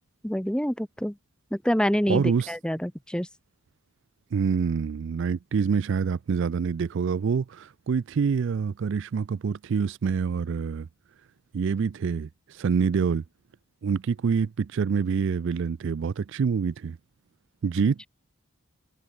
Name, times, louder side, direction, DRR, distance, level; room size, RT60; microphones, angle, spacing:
voice 1, 0.2-1.1 1.5-3.3, equal, 5° left, 0.9 m, -26 dB
voice 2, 2.1-2.5 4.3-10.9 11.5-13.2 13.8-17.0 17.6-18.1, right 6 dB, 55° right, 0.3 m, -26 dB
head